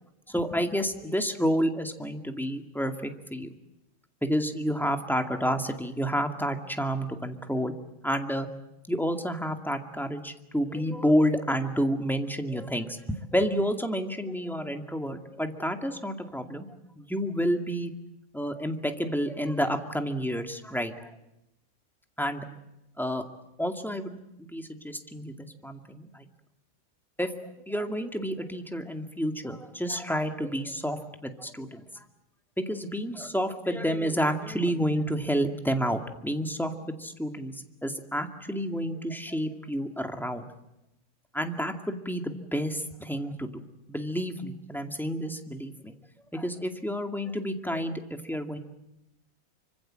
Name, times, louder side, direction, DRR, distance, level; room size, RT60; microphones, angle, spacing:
voice 1, 0.3-3.5 4.2-7.7 8.0-8.5 8.9-16.7 17.0-17.9 18.3-21.1 22.2-22.5 23.0-23.2 23.6-26.2 27.2-27.3 27.7-32.0 32.6-36.7 37.0-37.6 37.8-40.4 41.3-43.5 43.9-45.9 46.3-48.6, equal, ahead, 5 dB, 2.2 m, -30 dB
26.0 x 25.5 x 7.7 m, 0.86 s
omnidirectional pair, 1.5 m